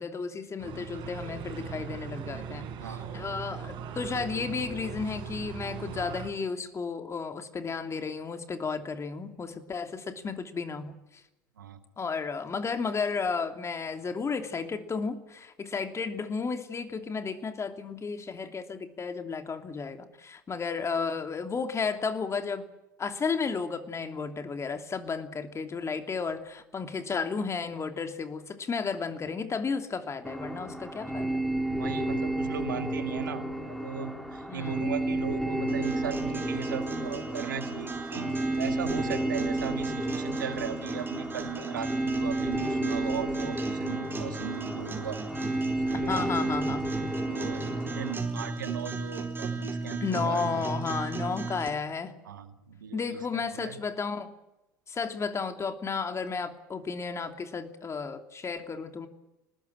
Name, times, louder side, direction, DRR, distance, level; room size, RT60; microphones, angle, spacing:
voice 1, 0.0-11.2 12.0-22.7 23.0-31.5 34.5-34.9 45.9-46.9 50.0-52.1 52.9-54.3 54.9-59.1, left 5 dB, 30° left, 7 dB, 2.9 m, -33 dB
Noisy Conversation, 0.6-6.3, right 7 dB, 50° right, 5.6 m, -39 dB
voice 2, 2.8-3.1 11.6-11.8 31.8-45.2 45.9-46.3 47.3-50.7 52.3-53.8, right 8 dB, 85° right, 9 dB, 1.7 m, -38 dB
sound 1, 30.2-48.1, right 1 dB, ahead, 3.8 m, -32 dB
sound 2, 35.7-51.7, right 3 dB, 20° right, 4.6 m, -37 dB
26.5 x 19.5 x 8.8 m, 0.95 s
hypercardioid pair, 70°, 10 cm